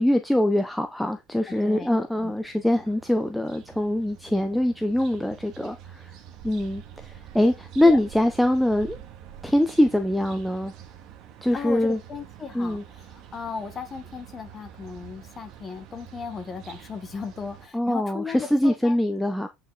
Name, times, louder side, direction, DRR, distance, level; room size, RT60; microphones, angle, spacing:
voice 1, 0.0-6.1 6.4-9.0 9.4-10.7 11.4-12.0 12.5-12.8 17.7-19.5, left 1 dB, ahead, 0.6 m, -23 dB
sound 1, 1.2-17.7, right 10 dB, 45° right, 1.7 m, -47 dB
voice 2, 1.4-2.3 7.8-8.0 11.5-18.9, left 5 dB, 20° left, 1.4 m, -36 dB
8.9 x 5.6 x 3.9 m
cardioid pair, 175°, 0 cm